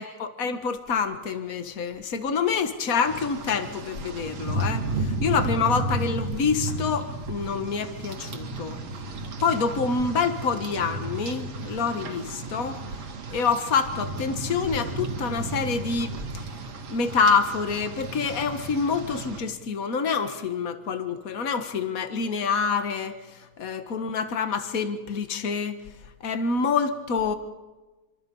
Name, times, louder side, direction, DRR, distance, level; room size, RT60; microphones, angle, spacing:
voice 1, 0.0-8.8 9.4-12.8 13.3-16.5 16.9-25.9 26.2-27.3, left 5 dB, 50° left, 8 dB, 1.0 m, -27 dB
Rain, 3.0-19.4, right 2 dB, 55° right, 3.1 m, -33 dB
27.0 x 25.0 x 5.5 m, 1.2 s
omnidirectional pair, 3.6 m